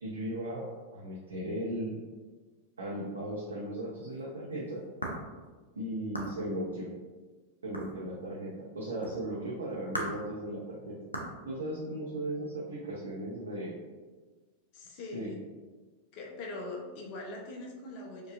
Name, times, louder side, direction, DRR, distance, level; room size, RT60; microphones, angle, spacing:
voice 1, 0.0-1.9 2.8-4.8 5.7-6.9 7.6-11.0 11.5-13.8 14.9-15.3, right 1 dB, 75° right, -6 dB, 0.6 m, -37 dB
sound 1, 3.6-3.7 4.0-5.4 6.1-6.4 7.7-8.2 9.0-9.2 9.9-10.2 11.1-11.4, equal, 85° left, 0.5 m, -38 dB
voice 2, 14.7-15.4 16.1-18.3, left 2 dB, 45° left, 1 dB, 0.6 m, -42 dB
4.6 x 2.3 x 2.4 m, 1.3 s
figure-of-eight pair, 90°, 0 cm